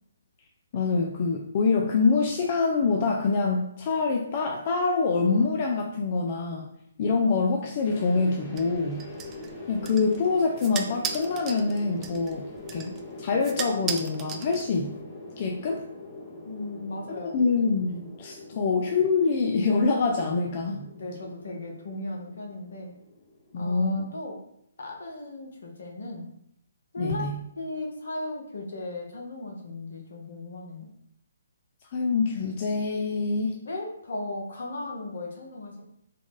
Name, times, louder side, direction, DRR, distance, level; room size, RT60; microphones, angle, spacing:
voice 1, 0.7-6.7 7.0-9.1 9.7-15.0 15.4-15.8 17.2-20.9 23.5-24.2 27.0-27.4 31.9-33.6, left 4 dB, 40° left, 1 dB, 0.5 m, -25 dB
sound 1, 7.8-24.0, left 2 dB, 15° left, 0.8 m, -43 dB
sound 2, 8.6-15.0, right 7 dB, 20° right, 0.4 m, -38 dB
voice 2, 16.4-17.5 18.5-18.6 20.9-22.9 23.6-24.4 24.8-26.3 26.9-30.9 33.6-35.8, left 2 dB, 65° left, 0 dB, 1.1 m, -36 dB
3.7 x 2.4 x 3.7 m, 0.74 s
hypercardioid pair, 145°, 0 cm